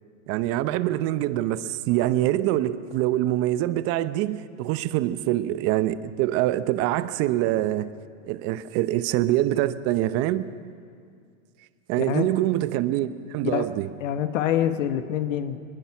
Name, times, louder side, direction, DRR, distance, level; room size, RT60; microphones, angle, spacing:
voice 1, 0.3-7.9 8.2-10.5 11.9-13.9, right 14 dB, 35° right, 0.8 m, -25 dB
voice 2, 14.0-15.6, left 10 dB, 70° left, 1.4 m, -25 dB
21.0 x 21.0 x 6.0 m
hypercardioid pair, 130°, 39 cm